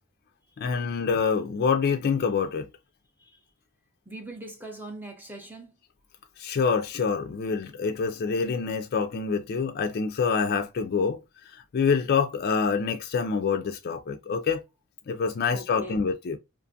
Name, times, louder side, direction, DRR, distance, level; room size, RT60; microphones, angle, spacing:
voice 1, 0.6-2.7 6.4-11.2 11.5-14.6 15.1-16.4, left 5 dB, 45° left, 0.3 m, -26 dB
voice 2, 4.1-5.7 15.5-16.0, right 1 dB, 10° right, 0.5 m, -41 dB
2.5 x 2.5 x 2.5 m
head